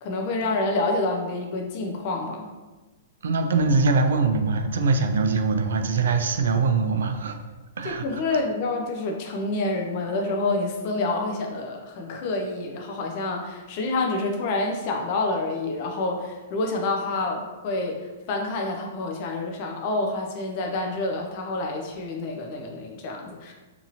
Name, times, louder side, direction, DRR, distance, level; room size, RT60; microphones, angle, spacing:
voice 1, 0.0-2.5 7.8-23.5, left 2 dB, 30° left, 1 dB, 0.3 m, -28 dB
voice 2, 3.2-7.4 7.8-8.4, right 4 dB, 80° right, 6 dB, 0.3 m, -23 dB
2.8 x 2.5 x 2.8 m, 1.2 s
hypercardioid pair, 175°, 0 cm